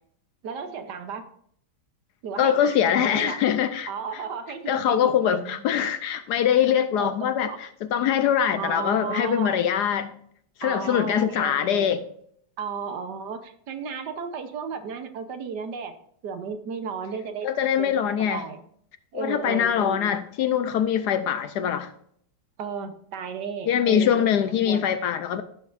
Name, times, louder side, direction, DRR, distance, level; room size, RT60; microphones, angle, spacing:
voice 1, 0.4-1.2 2.2-2.8 3.0-3.4 3.9-5.6 7.0-7.6 8.5-9.6 10.6-11.9 12.6-15.9 16.2-17.5 17.8-18.6 19.1-20.1 22.6-24.3 24.6-24.9, right 6 dB, 70° right, 1.4 m, -34 dB
voice 2, 2.4-3.9 4.7-7.5 7.9-10.1 10.6-12.0 17.4-18.4 19.1-21.9 23.7-25.4, left 9 dB, 70° left, 1.1 m, -23 dB
14.5 x 7.0 x 2.5 m
omnidirectional pair, 2.0 m